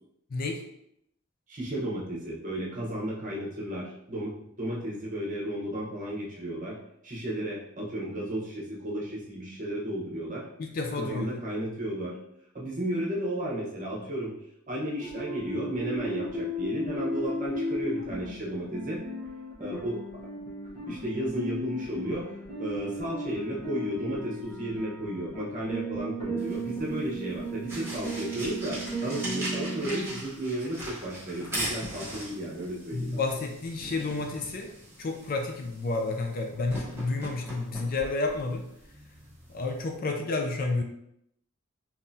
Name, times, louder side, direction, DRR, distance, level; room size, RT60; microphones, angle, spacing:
voice 1, 0.3-0.6 10.6-11.4 32.9-34.7 35.0-38.6 39.5-40.8, left 3 dB, 40° left, 3 dB, 0.4 m, -30 dB
voice 2, 1.5-4.3 4.6-6.8 7.0-10.4 11.0-12.2 12.5-14.3 14.7-19.0 19.6-20.1 20.8-22.3 22.6-33.4, right 1 dB, 35° right, -4 dB, 0.9 m, -33 dB
sound 1, 15.0-30.1, equal, 20° left, 0.9 m, -35 dB
sound 2, 26.4-40.0, right 1 dB, 10° right, 1.0 m, -40 dB
3.7 x 3.0 x 2.7 m, 0.76 s
head